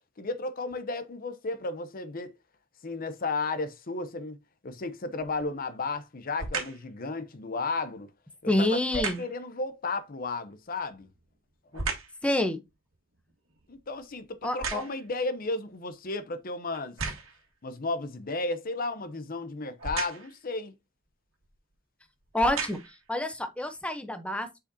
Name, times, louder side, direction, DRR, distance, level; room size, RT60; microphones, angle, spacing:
voice 1, 0.2-2.3 2.8-4.4 4.6-8.1 8.4-8.7 8.9-11.1 11.7-11.9 13.7-17.0 17.6-20.8, left 3 dB, 45° left, 0.7 m, -33 dB
sound 1, 5.2-5.6 6.4-6.9 8.9-9.4 10.8-12.2 12.7-15.2 15.9-16.0 16.7-17.5 19.8-20.4 21.4-21.6 22.2-23.1 23.7-23.8, right 4 dB, 90° right, 1.6 m, -36 dB
voice 2, 8.5-9.2 12.2-12.6 14.4-14.8 22.3-24.6, left 1 dB, 5° left, 0.7 m, -28 dB
7.1 x 5.0 x 2.7 m
head